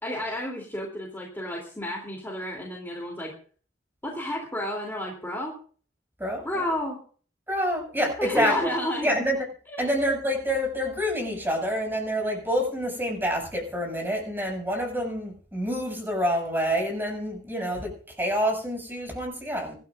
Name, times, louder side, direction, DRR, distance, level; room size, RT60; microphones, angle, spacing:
voice 1, 0.0-3.3 4.0-5.6 6.4-7.0 8.2-9.2 9.7-9.9, left 1 dB, 10° left, -1 dB, 3.2 m, -31 dB
voice 2, 7.5-8.7 9.0-9.4 9.8-19.7, equal, 10° right, 1 dB, 7.0 m, -27 dB
24.5 x 13.0 x 2.6 m, 0.42 s
head